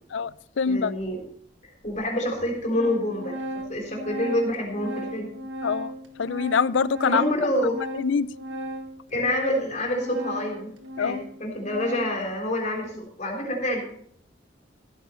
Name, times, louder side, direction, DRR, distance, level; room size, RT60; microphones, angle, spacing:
voice 1, 0.1-0.9 5.6-5.9 6.2-7.2 7.9-8.3 11.0-11.2, left 6 dB, 75° left, 19 dB, 0.4 m, -24 dB
voice 2, 0.7-1.2 1.6-3.4 3.7-5.3 7.0-7.9 9.1-10.7 11.0-13.8, left 1 dB, 40° left, 0 dB, 3.9 m, -27 dB
Organ, 1.0-1.1 1.9-2.0 2.4-12.3, equal, 80° right, 1.5 m, -37 dB
15.0 x 9.3 x 4.4 m, 0.66 s
head